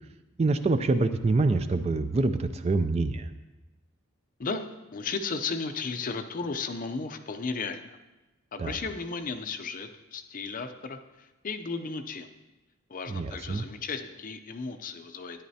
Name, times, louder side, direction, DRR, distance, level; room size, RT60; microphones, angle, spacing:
voice 1, 0.4-3.3 8.6-8.7 13.1-13.6, right 3 dB, 30° right, 10 dB, 0.3 m, -26 dB
voice 2, 4.9-8.0 8.5-12.3 12.9-15.4, left 4 dB, 40° left, 8 dB, 0.5 m, -35 dB
12.5 x 10.0 x 2.8 m, 1.1 s
head